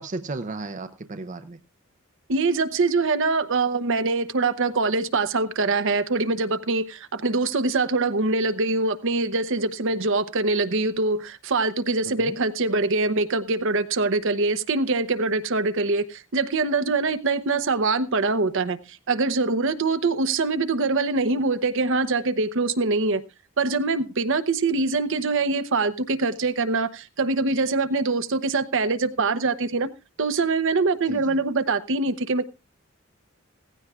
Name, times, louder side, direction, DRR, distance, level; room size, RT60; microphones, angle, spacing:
voice 1, 0.0-1.6 12.2-12.3 31.1-31.4, right 3 dB, 35° right, 9 dB, 0.6 m, -34 dB
voice 2, 2.3-18.8 19.1-23.2 23.6-29.9 30.2-32.5, right 3 dB, 65° right, 11 dB, 0.8 m, -24 dB
17.0 x 15.5 x 2.4 m, 0.26 s
head